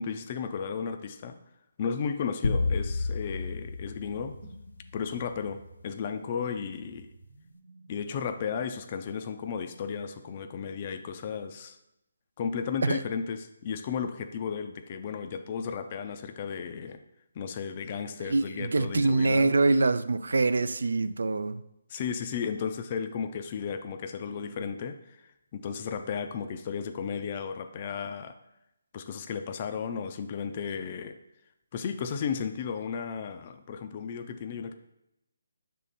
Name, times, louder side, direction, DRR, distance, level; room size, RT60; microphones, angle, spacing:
voice 1, 0.0-1.4 1.8-4.4 4.9-7.1 7.9-11.8 12.4-17.0 17.4-19.5 21.9-25.2 25.5-28.4 28.9-31.1 31.7-34.7, left 6 dB, 35° left, 0.4 m, -34 dB
sound 1, 2.4-4.9, left 3 dB, 80° left, 0.5 m, -30 dB
sound 2, 3.5-8.5, right 3 dB, 55° right, 1.0 m, -53 dB
voice 2, 18.2-21.6, right 3 dB, 80° right, 0.3 m, -25 dB
6.7 x 3.7 x 4.1 m
hypercardioid pair, 160°, 0 cm